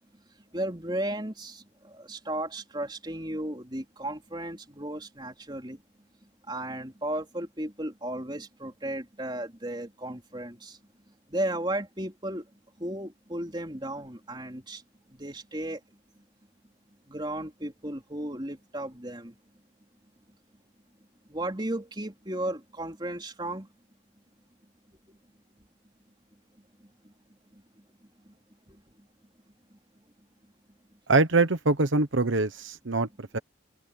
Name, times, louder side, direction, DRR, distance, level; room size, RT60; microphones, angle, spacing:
voice 1, 0.1-5.8 6.2-10.8 11.1-12.5 12.8-14.8 15.1-15.8 16.2-16.3 17.1-19.4 21.3-23.7 25.1-25.2 26.8-27.1 27.5-27.8 28.2-28.4 28.7-29.1 29.7-29.8, right 1 dB, 20° right, 3.7 m, -35 dB
voice 2, 31.1-33.4, right 3 dB, 75° right, 1.2 m, -24 dB
open air
head